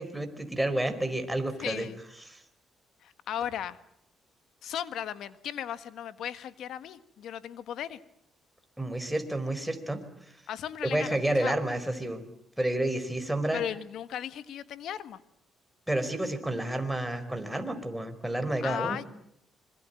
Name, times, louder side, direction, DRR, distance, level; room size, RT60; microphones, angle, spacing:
voice 1, 0.0-1.9 2.2-2.4 8.8-10.0 10.8-12.2 12.6-13.6 15.9-19.0, right 1 dB, 5° right, 7 dB, 4.6 m, -30 dB
voice 2, 1.6-2.0 3.0-3.8 4.6-8.0 10.5-11.6 13.5-15.2 18.6-19.1, left 10 dB, 75° left, 12 dB, 1.6 m, -36 dB
25.5 x 22.5 x 9.0 m, 0.73 s
cardioid pair, 90°, 0 cm